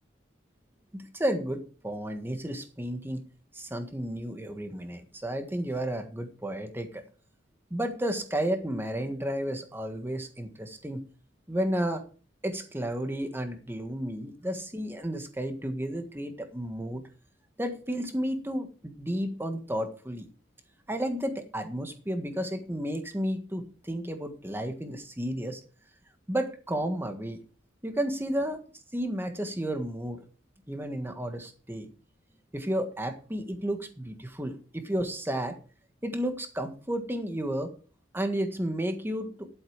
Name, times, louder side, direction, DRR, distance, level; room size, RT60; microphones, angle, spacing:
voice 1, 0.9-3.2 3.5-7.0 7.7-11.0 11.5-12.0 12.4-17.0 17.6-20.3 20.9-25.6 26.3-27.4 27.8-28.6 28.9-30.2 30.7-31.9 32.5-35.6 36.0-37.7 38.1-39.5, right 1 dB, 10° right, 7 dB, 1.5 m, -32 dB
12.0 x 7.9 x 5.1 m, 0.37 s
head